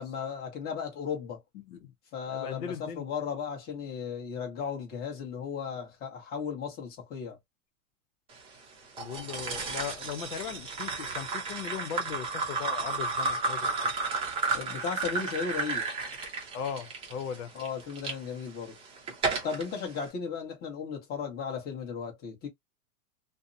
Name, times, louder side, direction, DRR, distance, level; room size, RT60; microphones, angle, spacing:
voice 1, 0.0-1.4 2.1-7.4 14.5-15.9 17.5-18.7 19.4-22.5, left 6 dB, 20° left, 1.0 m, -35 dB
voice 2, 2.3-3.1 9.0-13.7 16.5-17.5, left 8 dB, 80° left, 0.8 m, -38 dB
sound 1, 9.0-18.1 18.7-19.6, right 3 dB, 15° right, 0.6 m, -32 dB
2.7 x 2.1 x 2.6 m
hypercardioid pair, 140°, 44 cm